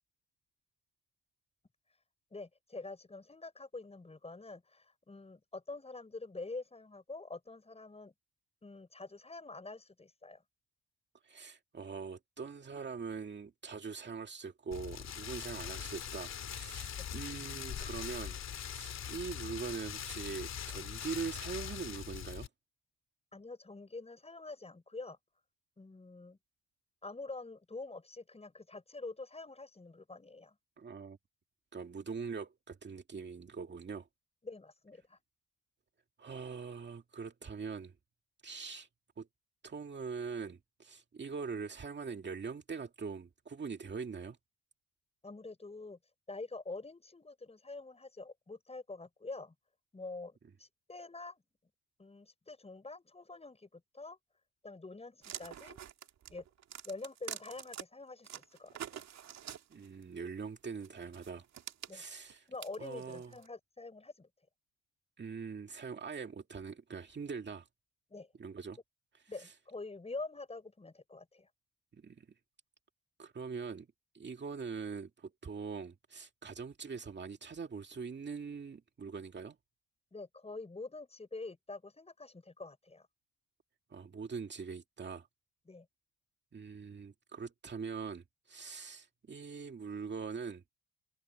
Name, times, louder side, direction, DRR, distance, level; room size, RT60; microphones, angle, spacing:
voice 1, 2.3-8.1 8.6-10.4 17.0-17.1 23.3-25.2 25.8-26.4 27.0-30.6 34.4-35.2 45.2-46.0 46.3-49.5 49.9-51.4 52.0-54.2 54.6-55.8 56.3-56.4 56.8-59.0 61.9-62.0 62.5-64.3 68.1-68.3 69.3-71.5 80.1-83.1 85.7-85.9, left 3 dB, 20° left, 6.8 m, -46 dB
voice 2, 11.2-18.4 18.7-22.5 30.8-31.2 31.7-34.1 36.2-37.9 38.4-38.9 39.2-39.3 39.6-44.4 59.7-61.4 61.9-62.5 62.8-63.3 65.2-67.7 68.4-68.8 69.4-69.5 71.9-72.3 73.2-73.9 74.1-79.6 83.9-85.3 86.5-90.6, right 5 dB, 35° right, 2.2 m, -42 dB
Rain, 14.7-22.5, left 9 dB, 60° left, 2.7 m, -42 dB
sound 1, 55.2-57.8 58.2-60.0 60.8-63.5, right 10 dB, 65° right, 2.2 m, -46 dB
cardioid pair, 90°, 30 cm